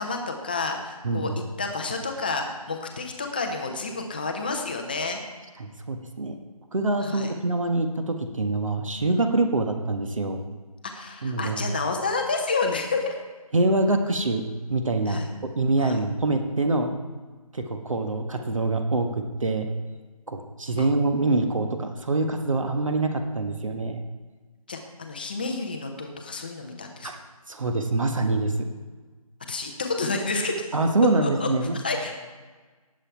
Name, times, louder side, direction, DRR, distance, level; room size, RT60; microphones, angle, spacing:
voice 1, 0.0-1.3 1.6-5.2 7.0-7.3 10.9-13.2 15.1-15.3 15.8-16.0 20.8-20.9 24.7-27.1 29.5-30.7 31.2-31.5 31.7-32.2, left 3 dB, 15° left, 3 dB, 0.7 m, -29 dB
voice 2, 1.0-1.4 5.6-6.4 6.7-10.4 11.2-11.6 13.5-14.4 14.7-15.2 15.6-16.9 17.5-19.7 20.3-24.0 27.0-27.2 27.5-28.7 30.7-31.8, right 2 dB, 55° right, 5 dB, 1.4 m, -25 dB
18.0 x 7.5 x 4.6 m, 1.4 s
figure-of-eight pair, 165°, 19 cm